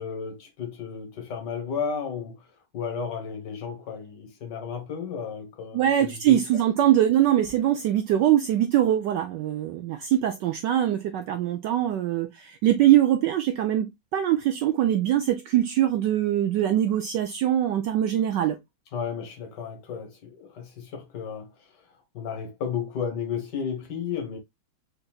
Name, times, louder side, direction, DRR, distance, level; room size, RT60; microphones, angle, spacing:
voice 1, 0.0-2.5 2.7-6.6 18.9-21.9 22.1-24.4, left 6 dB, 60° left, 1.6 m, -33 dB
voice 2, 5.7-18.6, right 12 dB, 75° right, 1.0 m, -23 dB
4.5 x 3.9 x 2.3 m
omnidirectional pair, 2.3 m